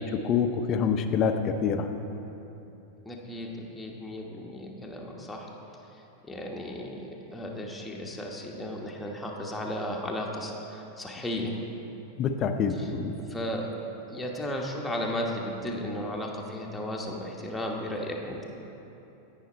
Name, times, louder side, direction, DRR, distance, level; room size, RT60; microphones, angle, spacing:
voice 1, 0.0-1.9 12.2-13.1, left 6 dB, 30° left, 7 dB, 0.7 m, -26 dB
voice 2, 3.0-5.5 6.2-11.6 12.8-12.9 13.3-13.7 14.1-18.4, left 1 dB, 5° left, -2 dB, 1.2 m, -35 dB
17.0 x 5.8 x 4.3 m, 3.0 s
figure-of-eight pair, 90°, 0 cm